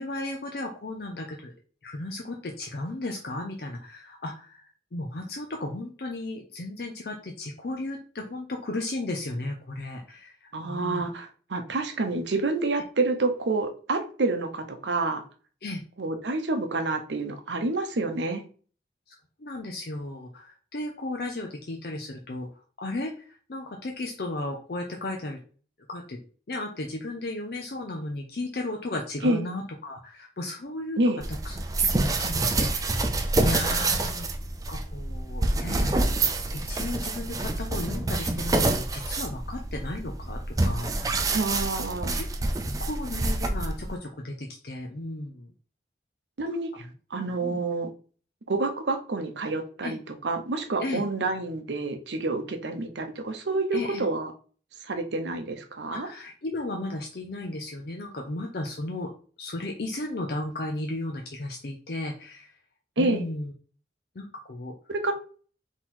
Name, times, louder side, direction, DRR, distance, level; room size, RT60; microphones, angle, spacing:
voice 1, 0.0-1.5 1.8-11.0 15.6-15.8 19.1-22.5 22.8-25.4 25.9-26.2 26.5-33.1 33.4-34.3 34.7-36.2 36.7-41.4 42.2-42.3 42.8-45.5 47.4-47.6 49.8-50.0 50.8-51.0 53.7-54.1 55.9-59.1 59.4-62.5 63.0-63.5 64.1-64.7, left 2 dB, 60° left, 1 dB, 0.6 m, -35 dB
voice 2, 10.5-15.2 16.0-18.4 29.2-29.4 31.0-31.2 41.3-42.2 46.4-47.9 48.5-54.3 54.8-56.1 63.0-63.2 64.9-65.1, right 2 dB, 85° right, 6 dB, 0.8 m, -28 dB
sound 1, 31.2-44.0, right 2 dB, 20° right, 0.4 m, -27 dB
3.9 x 3.0 x 4.2 m, 0.41 s
head